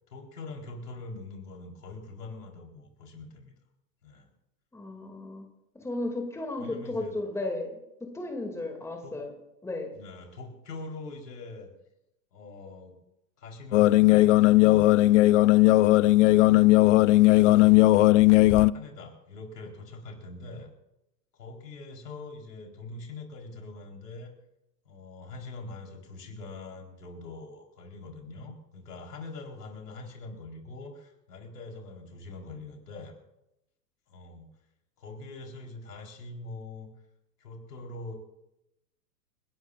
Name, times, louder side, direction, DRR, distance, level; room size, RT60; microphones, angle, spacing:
voice 1, 0.1-3.5 4.0-4.3 6.6-7.2 9.0-9.2 9.9-11.7 12.3-12.9 13.4-15.4 17.0-18.1 18.7-20.7 21.3-24.3 24.9-33.2 34.1-34.5 35.0-36.9 37.4-38.1, left 3 dB, 75° left, 1 dB, 4.3 m, -43 dB
voice 2, 4.7-5.5 5.7-9.3 9.6-9.9, left 2 dB, 5° left, 2 dB, 2.5 m, -34 dB
sound 1, 13.7-18.7, left 18 dB, 50° left, 0.5 m, -18 dB
30.0 x 12.0 x 2.5 m, 0.86 s
hypercardioid pair, 105°, 48 cm